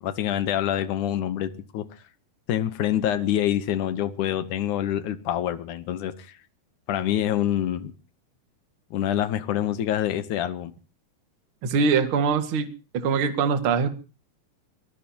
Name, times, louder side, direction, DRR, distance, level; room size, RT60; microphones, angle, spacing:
voice 1, 0.0-1.8 2.5-6.4 6.9-7.9 8.9-10.7, left 11 dB, 75° left, 1.8 m, -26 dB
voice 2, 11.6-12.7 12.9-13.9, right 5 dB, 45° right, 1.8 m, -22 dB
25.0 x 18.0 x 2.9 m
omnidirectional pair, 5.0 m